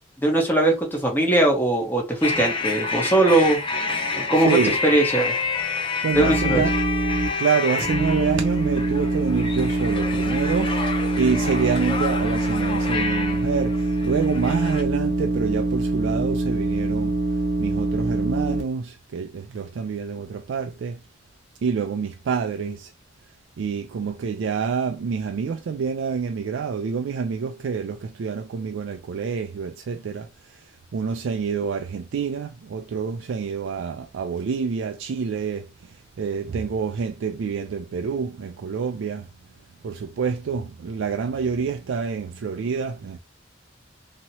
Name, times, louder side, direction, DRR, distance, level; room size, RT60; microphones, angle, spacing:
voice 1, 0.2-3.6 4.2-4.6 4.8-5.3 6.1-6.6, right 1 dB, 10° left, 1.0 m, -20 dB
sound 1, 2.2-14.8, left 4 dB, 30° left, 0.6 m, -28 dB
voice 2, 4.5-4.8 6.0-6.7 7.4-10.8 11.2-17.1 17.6-21.0 21.6-22.9 23.6-30.3 30.9-35.7 36.2-39.3 39.8-43.2, right 6 dB, 90° right, 0.4 m, -27 dB
sound 2, 6.1-7.3 7.8-18.6, right 2 dB, 40° right, 0.8 m, -24 dB
2.9 x 2.9 x 2.8 m
head